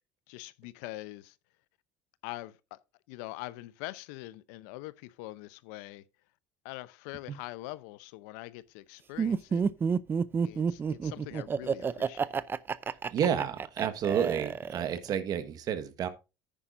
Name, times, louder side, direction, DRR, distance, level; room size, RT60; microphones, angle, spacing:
voice 1, 0.3-1.4 2.2-2.8 3.1-6.0 6.6-9.6 10.4-12.3, left 18 dB, 85° left, 0.6 m, -43 dB
Laughter, 9.2-15.1, right 6 dB, 25° right, 0.5 m, -29 dB
voice 2, 13.1-16.1, right 8 dB, 45° right, 1.4 m, -30 dB
10.0 x 9.8 x 2.6 m
supercardioid pair, 120°, 9 cm